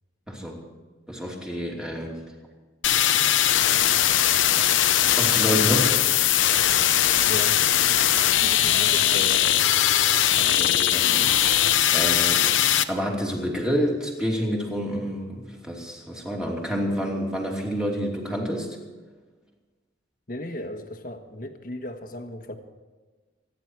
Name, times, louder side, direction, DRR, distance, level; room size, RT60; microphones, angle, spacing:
voice 1, 0.3-0.6 1.1-2.2 5.1-6.0 10.3-11.6 11.9-12.5 12.9-18.8, equal, 5° right, -1 dB, 2.8 m, -28 dB
sound 1, 2.8-12.8, left 11 dB, 85° left, 0.8 m, -20 dB
voice 2, 7.3-7.6 8.3-9.5 20.3-22.5, left 1 dB, 45° left, 7 dB, 1.4 m, -35 dB
25.0 x 10.5 x 4.7 m, 1.4 s
head